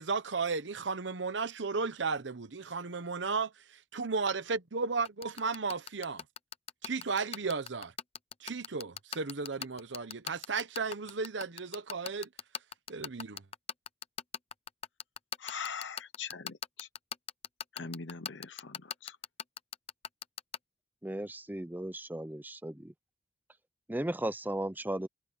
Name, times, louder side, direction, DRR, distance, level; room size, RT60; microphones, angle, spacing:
voice 1, 0.0-6.2 6.8-7.9 8.4-12.3 12.9-13.4, right 4 dB, 75° right, 1.0 m, -34 dB
sound 1, 5.1-20.6, left 8 dB, 35° left, 0.7 m, -38 dB
voice 2, 15.4-16.9 17.7-19.2, left 5 dB, 80° left, 1.0 m, -42 dB
voice 3, 21.0-22.9 23.9-25.1, right 1 dB, 10° right, 0.6 m, -36 dB
head